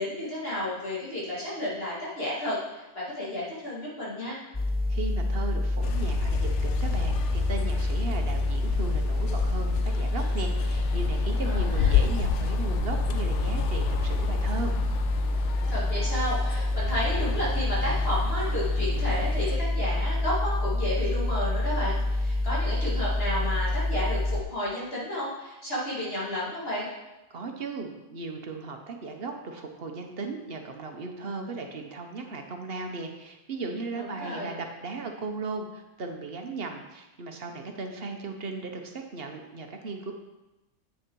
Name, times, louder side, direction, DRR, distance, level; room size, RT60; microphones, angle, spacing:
voice 1, 0.0-4.4 11.5-12.0 15.7-26.9 34.0-34.5, left 1 dB, 55° left, -7 dB, 2.3 m, -32 dB
sound 1, 4.5-24.4, left 1 dB, 15° left, 0.3 m, -27 dB
voice 2, 4.9-14.7 27.3-40.1, right 3 dB, 55° right, 4 dB, 1.1 m, -36 dB
sound 2, 5.8-19.6, left 10 dB, 75° left, 0.9 m, -33 dB
8.4 x 6.4 x 4.6 m, 1.0 s
omnidirectional pair, 1.2 m